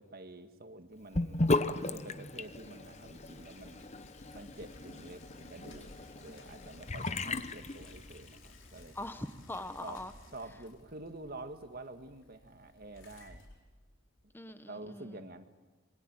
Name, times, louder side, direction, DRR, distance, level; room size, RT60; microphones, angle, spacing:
voice 1, 0.0-1.5 1.8-3.8 4.3-9.0 9.8-10.0 10.3-13.4 14.7-15.4, right 2 dB, 50° right, 8 dB, 1.9 m, -48 dB
Sink (filling or washing) / Bathtub (filling or washing), 1.1-8.5, left 2 dB, 35° left, 1.0 m, -36 dB
Bicycle, 1.2-14.3, left 1 dB, 65° left, 5.0 m, -57 dB
voice 2, 8.9-10.1 14.3-15.3, left 1 dB, 10° left, 11 dB, 1.2 m, -42 dB
26.5 x 22.5 x 9.0 m, 1.3 s
head